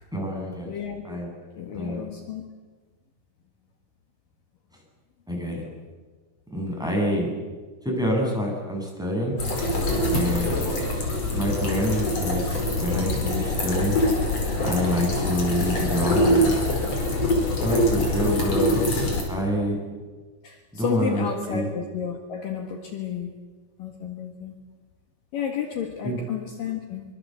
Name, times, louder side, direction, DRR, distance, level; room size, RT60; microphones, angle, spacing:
voice 1, 0.1-0.7 1.0-1.3 1.7-2.1 5.3-5.7 6.5-7.3 7.8-9.4 10.1-10.6 11.3-12.4 12.8-14.0 14.6-16.5 17.6-18.8 19.3-19.8 20.7-21.7 26.0-26.2, equal, ahead, -1 dB, 7.3 m, -26 dB
voice 2, 0.7-1.1 1.5-2.4 17.2-17.3 20.4-23.3 23.8-24.6 25.3-27.0, left 8 dB, 65° left, 4 dB, 3.3 m, -32 dB
sound 1, 9.4-19.2, left 1 dB, 40° left, 5.9 m, -24 dB
25.0 x 24.5 x 8.0 m, 1.4 s
omnidirectional pair, 4.6 m